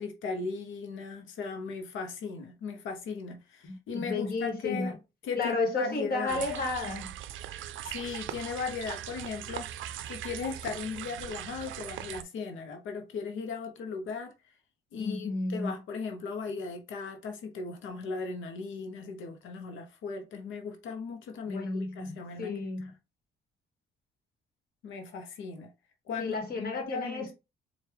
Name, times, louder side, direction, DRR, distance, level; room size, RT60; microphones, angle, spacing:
voice 1, 0.0-5.0 5.2-6.4 7.8-14.3 14.9-22.6 24.8-25.7 26.1-26.4 26.7-27.3, left 5 dB, 80° left, 0.9 m, -37 dB
voice 2, 3.6-4.9 5.4-7.2 15.0-15.7 21.5-22.9 26.2-27.3, left 3 dB, 50° left, 1.7 m, -32 dB
sound 1, 6.3-12.2, right 11 dB, 75° right, 0.4 m, -40 dB
4.4 x 2.5 x 3.4 m
cardioid pair, 90°, 20 cm